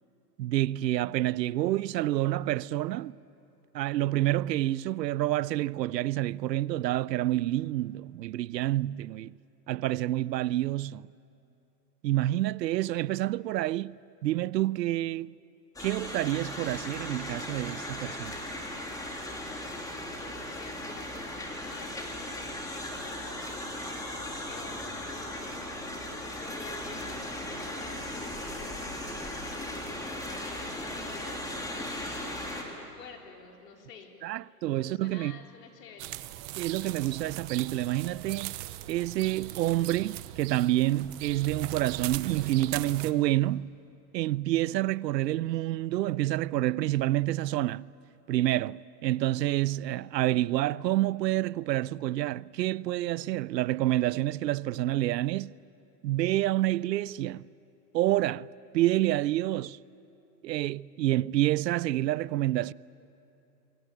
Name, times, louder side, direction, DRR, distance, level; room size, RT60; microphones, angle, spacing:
voice 1, 0.4-3.2 3.7-9.3 9.7-11.1 12.0-15.3 15.8-18.3 34.2-35.4 36.6-38.6 38.9-43.7 44.1-47.9 48.3-55.5 56.0-57.4 57.9-58.5 58.7-59.8 60.4-62.7, right 15 dB, 80° right, 0.7 m, -28 dB
sound 1, 15.8-32.6, left 1 dB, 5° left, 2.8 m, -37 dB
voice 2, 20.1-24.0 24.5-34.1 34.8-36.2, left 5 dB, 75° left, 4.3 m, -50 dB
sound 2, 36.0-43.1, right 16 dB, 30° right, 0.8 m, -39 dB
27.5 x 23.5 x 9.1 m
hypercardioid pair, 145°, 49 cm